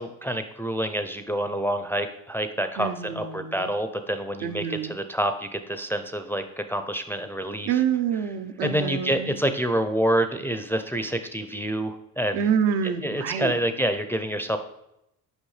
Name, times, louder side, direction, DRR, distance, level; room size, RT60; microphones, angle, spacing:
voice 1, 0.0-7.8 8.6-12.5 12.8-14.6, right 1 dB, 5° left, 7 dB, 0.4 m, -27 dB
voice 2, 2.8-3.7 4.4-5.0 7.7-9.4 12.3-13.6, right 8 dB, 75° right, 8 dB, 0.6 m, -27 dB
6.5 x 5.0 x 3.2 m, 0.83 s
supercardioid pair, 65°, 40 cm